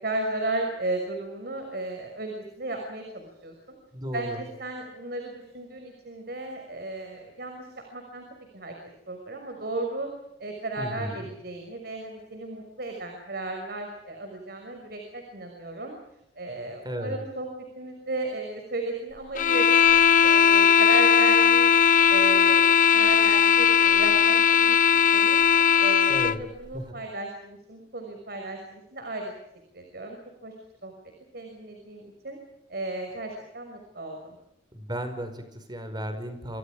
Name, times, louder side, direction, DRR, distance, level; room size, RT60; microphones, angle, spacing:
voice 1, 0.0-3.8 4.1-8.2 8.5-8.7 9.1-10.1 10.4-16.0 16.3-17.5 17.7-21.7 22.1-22.7 22.9-24.8 25.1-25.4 25.8-29.3 29.7-30.2 30.4-30.5 30.8-30.9 31.3-32.4 32.7-34.4, right 2 dB, 60° right, 3 dB, 6.0 m, -34 dB
voice 2, 3.9-4.4 10.8-11.3 16.8-17.2 26.1-26.4 26.7-26.8 34.7-36.6, equal, 25° right, 8 dB, 5.3 m, -34 dB
sound 1, 19.4-26.4, left 8 dB, 50° left, 0.8 m, -19 dB
29.0 x 26.0 x 5.0 m, 0.84 s
head